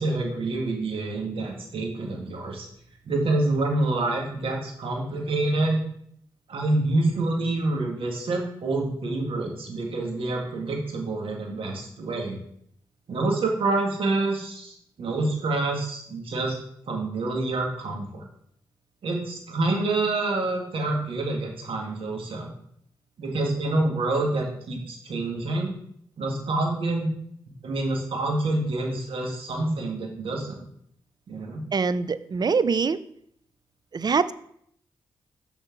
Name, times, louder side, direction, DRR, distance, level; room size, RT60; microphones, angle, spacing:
voice 1, 0.0-2.7 3.1-5.8 6.5-12.4 13.1-16.6 16.9-18.2 19.0-22.5 23.2-25.7 26.2-27.1 27.6-30.6 31.3-31.6, right 2 dB, 75° right, 1 dB, 1.8 m, -27 dB
voice 2, 31.7-33.0 33.9-34.3, right 5 dB, 45° right, 16 dB, 0.5 m, -23 dB
6.8 x 4.3 x 5.9 m, 0.69 s
supercardioid pair, 45°, 9 cm